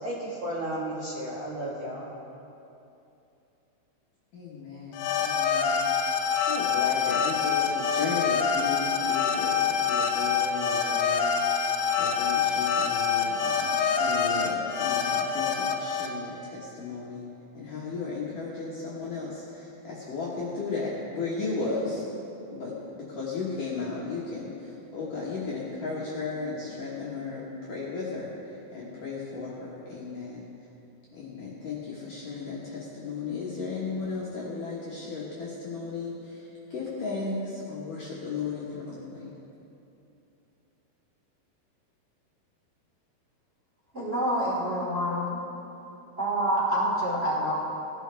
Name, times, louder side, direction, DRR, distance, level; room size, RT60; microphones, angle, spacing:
voice 1, 0.0-2.1, right 1 dB, 80° right, -6 dB, 1.4 m, -33 dB
voice 2, 4.3-17.3 17.5-22.1 22.5-30.5 31.1-39.3, left 4 dB, 65° left, -7 dB, 2.2 m, -35 dB
sound 1, 4.9-16.1, left 6 dB, 85° left, 3.3 m, -26 dB
voice 3, 43.9-45.4 46.2-47.5, equal, 20° right, -8 dB, 1.8 m, -27 dB
18.5 x 12.0 x 3.4 m, 2.8 s
omnidirectional pair, 5.7 m